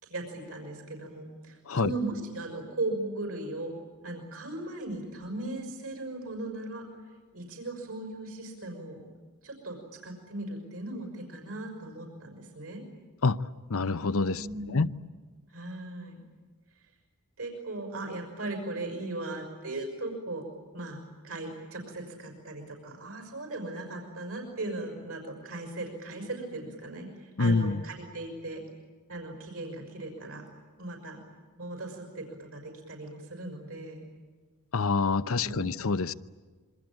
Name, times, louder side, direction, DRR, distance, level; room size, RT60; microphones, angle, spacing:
voice 1, 0.0-3.7 4.0-6.9 7.3-9.1 9.4-12.8 14.3-14.9 15.5-16.2 17.4-20.5 20.7-28.6 29.1-30.5 30.8-31.2 31.6-34.0 35.4-35.7, right 2 dB, 65° right, 3 dB, 5.9 m, -38 dB
voice 2, 13.7-14.5 14.7-14.9 27.4-27.8 34.7-36.1, left 4 dB, 65° left, 14 dB, 0.8 m, -26 dB
27.0 x 24.5 x 8.9 m, 1.5 s
head